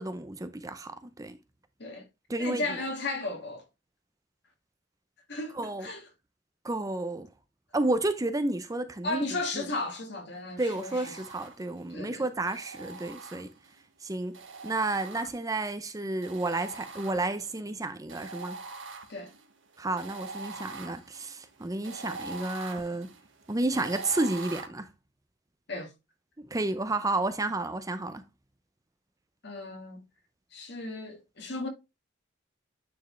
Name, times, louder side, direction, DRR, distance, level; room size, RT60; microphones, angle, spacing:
voice 1, 0.0-1.4 2.3-2.6 5.5-5.9 6.6-7.3 7.7-9.3 9.6-9.7 10.6-13.5 14.0-14.4 14.6-18.6 19.8-23.1 23.5-24.9 26.5-28.2, right 2 dB, 20° right, 0.6 m, -31 dB
voice 2, 2.4-3.6 5.3-6.1 9.0-11.2 11.9-12.3 19.1-19.3 25.7-25.9 29.4-30.0 30.5-31.7, left 2 dB, 60° left, 2.1 m, -35 dB
sound 1, 10.6-11.9 12.5-13.8 14.3-15.7 16.2-17.5 18.1-24.7, right 3 dB, 70° right, 1.3 m, -44 dB
9.4 x 4.5 x 3.2 m
head